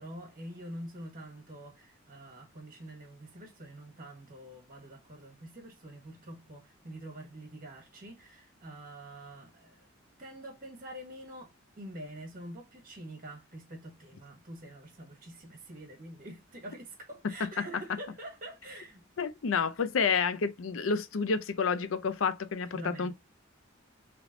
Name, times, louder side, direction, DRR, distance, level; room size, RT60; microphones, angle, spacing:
voice 1, 0.0-9.9 10.2-19.0 22.7-23.1, right 1 dB, 45° right, 1.6 m, -46 dB
voice 2, 19.2-23.1, left 5 dB, 75° left, 0.5 m, -29 dB
3.4 x 3.0 x 3.8 m
head